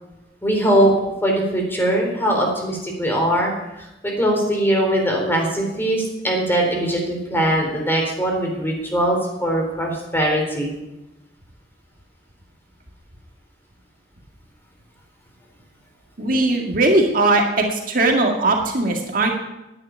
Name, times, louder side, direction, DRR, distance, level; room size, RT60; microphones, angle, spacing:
voice 1, 0.4-0.9 1.2-3.5 3.8-10.7, right 1 dB, 15° left, 1 dB, 4.0 m, -21 dB
voice 2, 16.2-19.3, right 2 dB, 55° right, 2 dB, 2.0 m, -19 dB
10.5 x 10.0 x 9.8 m, 0.97 s
head